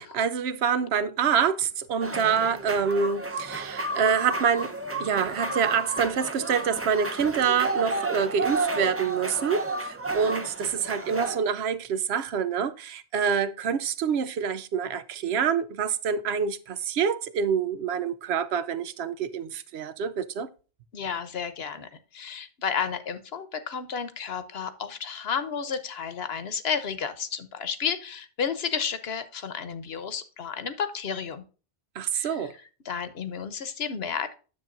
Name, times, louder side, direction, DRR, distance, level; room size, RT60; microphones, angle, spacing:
voice 1, 0.0-4.7 5.0-20.5 32.0-32.5, right 7 dB, 80° right, 0.9 m, -26 dB
sound 1, 2.0-11.4, right 2 dB, 15° right, 0.6 m, -32 dB
voice 2, 20.9-31.4 32.1-34.3, left 7 dB, 75° left, 1.2 m, -32 dB
9.8 x 7.3 x 2.5 m
omnidirectional pair, 1.1 m